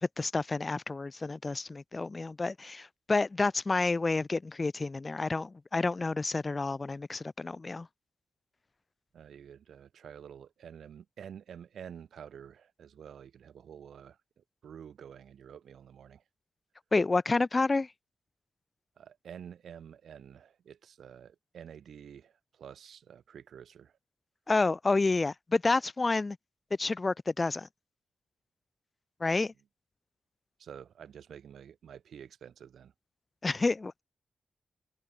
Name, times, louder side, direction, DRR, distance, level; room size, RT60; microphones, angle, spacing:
voice 1, 0.2-7.9 16.9-17.9 24.5-26.4 26.8-27.7 29.2-29.5 33.4-34.0, left 3 dB, 20° left, 0.6 m, -29 dB
voice 2, 9.1-16.2 19.0-23.9 30.6-32.9, right 8 dB, 75° right, 6.5 m, -49 dB
wide cardioid pair, 175°, 0 cm